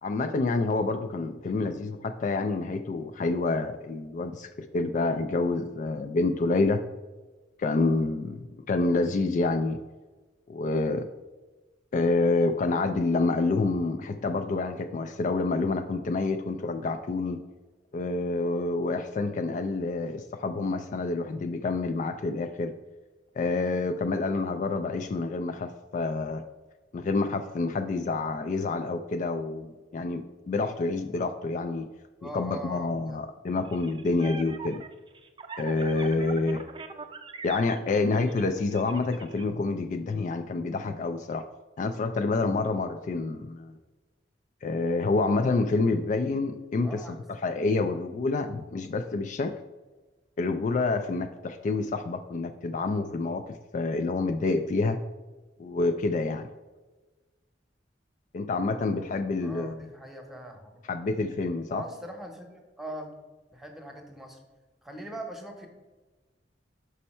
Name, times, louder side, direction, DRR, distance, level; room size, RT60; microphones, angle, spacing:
voice 1, 0.0-6.8 7.6-9.8 10.5-11.1 11.9-17.4 17.9-22.8 23.4-26.5 26.9-31.9 32.2-34.8 35.6-36.7 37.4-41.4 41.8-43.8 44.6-47.0 47.4-49.5 50.4-53.4 53.7-55.0 55.6-56.5 58.3-59.8 60.9-61.8, left 3 dB, 45° left, 8 dB, 0.3 m, -28 dB
voice 2, 1.4-1.8 32.2-33.2 37.9-38.2 46.8-47.3 59.4-60.8 61.7-63.1 63.5-64.4 64.8-65.7, right 1 dB, ahead, 3 dB, 0.9 m, -41 dB
sound 1, 33.6-39.4, right 4 dB, 30° right, 0.5 m, -43 dB
5.4 x 5.4 x 4.2 m, 1.2 s
head